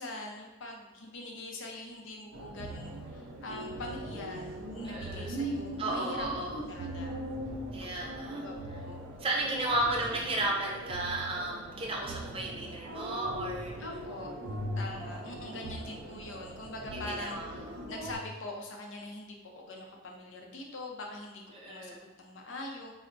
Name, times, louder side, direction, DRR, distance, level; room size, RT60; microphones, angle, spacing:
voice 1, 0.0-6.3 6.7-7.2 8.3-9.0 9.5-10.1 13.8-14.3 14.8-22.9, left 2 dB, 80° left, 1 dB, 0.6 m, -43 dB
sound 1, 2.3-18.2, right 1 dB, 80° right, 0.5 m, -40 dB
voice 2, 4.8-5.3 5.8-6.6 7.7-8.5 9.2-13.7 16.9-17.8 21.5-22.0, right 1 dB, 30° right, -2 dB, 0.5 m, -34 dB
4.4 x 2.1 x 2.5 m, 1.2 s
head